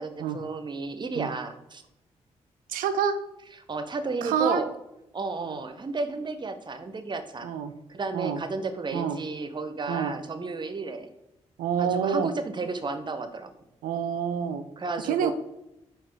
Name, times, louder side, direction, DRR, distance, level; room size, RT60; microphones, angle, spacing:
voice 1, 0.0-1.8 3.7-4.7 5.1-7.5 7.9-11.1 11.8-13.5 14.8-15.3, right 3 dB, 35° right, 10 dB, 0.6 m, -33 dB
voice 2, 2.7-3.2 4.2-4.6 5.4-5.6 7.4-7.7 8.1-8.4 8.9-9.2 9.9-10.1 11.6-12.3 13.8-14.6 15.0-15.3, right 7 dB, 80° right, 10 dB, 0.4 m, -27 dB
4.0 x 2.4 x 4.6 m, 0.89 s
hypercardioid pair, 40°, 14 cm